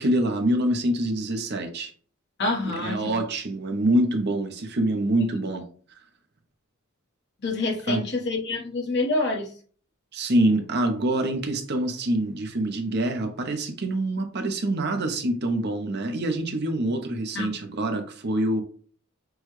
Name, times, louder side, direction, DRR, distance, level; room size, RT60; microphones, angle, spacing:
voice 1, 0.0-1.9 2.7-5.6 7.9-8.0 10.1-18.6, right 1 dB, 50° right, 0.8 m, -25 dB
voice 2, 2.4-3.2 5.2-5.3 7.4-9.5 17.3-17.5, left 2 dB, 55° left, 1.3 m, -27 dB
6.2 x 2.3 x 3.1 m
head